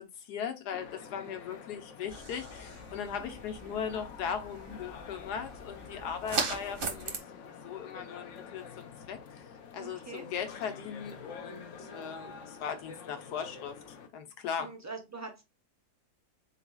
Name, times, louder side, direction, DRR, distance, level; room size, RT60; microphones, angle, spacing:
voice 1, 0.0-7.1 7.6-14.7, left 7 dB, 85° left, 1.4 m, -39 dB
sound 1, 0.7-14.1, left 6 dB, 60° left, 0.9 m, -47 dB
sound 2, 2.1-7.2, right 4 dB, 45° right, 0.8 m, -39 dB
voice 2, 9.7-10.3 14.6-15.4, right 4 dB, 20° right, 0.4 m, -43 dB
4.0 x 3.8 x 2.3 m
omnidirectional pair, 1.7 m